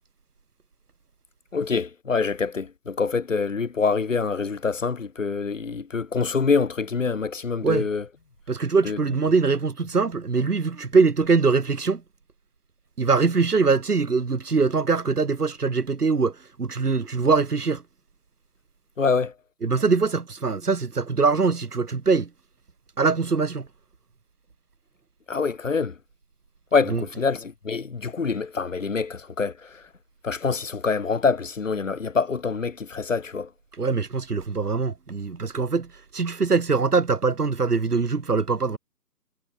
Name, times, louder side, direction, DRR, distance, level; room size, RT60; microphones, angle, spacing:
voice 1, 1.5-8.0 8.8-9.0 19.0-19.3 25.3-26.0 26.7-29.8 30.2-33.5, left 5 dB, 50° left, 2.1 m, -25 dB
voice 2, 8.5-12.0 13.0-17.8 19.6-22.3 23.0-23.7 26.9-27.0 33.8-38.8, right 4 dB, 65° right, 3.6 m, -23 dB
hypercardioid pair, 175°, 50 cm